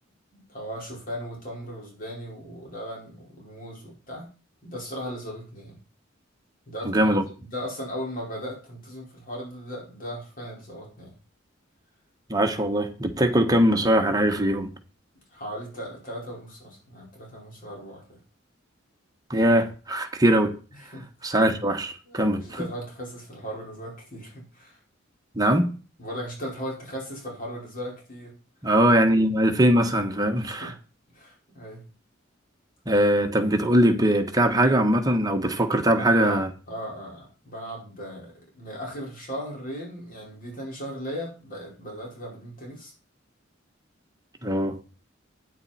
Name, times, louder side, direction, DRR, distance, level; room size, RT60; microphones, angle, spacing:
voice 1, 0.3-4.3 4.6-5.8 6.7-7.1 7.4-11.1 15.3-18.2 20.9-21.4 22.1-24.8 26.0-28.4 30.3-30.7 31.1-31.8 36.0-42.9, equal, 45° left, 4.8 m, -37 dB
voice 2, 6.8-7.2 12.3-14.7 19.3-20.5 21.2-22.6 25.3-25.7 28.6-30.7 32.9-36.5 44.4-44.9, right 1 dB, 20° right, 1.3 m, -21 dB
9.4 x 9.3 x 4.3 m
head